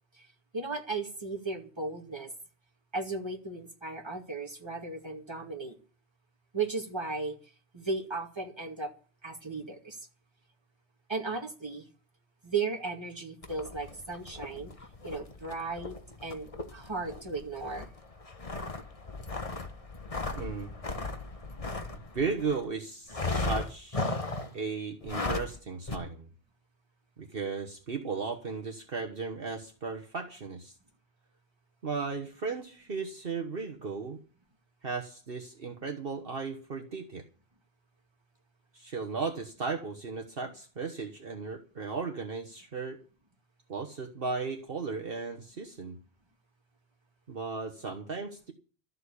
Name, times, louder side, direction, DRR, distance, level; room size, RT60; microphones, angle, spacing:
voice 1, 0.5-2.3 2.9-5.8 6.5-8.9 9.2-10.0 11.1-11.9 12.4-14.7 15.0-16.0 16.2-17.9, right 3 dB, 25° right, 2 dB, 2.4 m, -36 dB
sound 1, 13.4-22.7 23.1-24.6 25.0-25.6 25.9-26.0, left 3 dB, 30° left, 1.5 m, -36 dB
voice 2, 20.3-20.7 22.1-24.2 24.5-26.3 27.2-30.7 31.8-34.2 34.8-37.2 38.7-43.0 43.7-46.0 47.3-48.5, right 4 dB, 55° right, 3 dB, 1.5 m, -36 dB
13.5 x 7.7 x 9.9 m, 0.39 s
omnidirectional pair, 1.2 m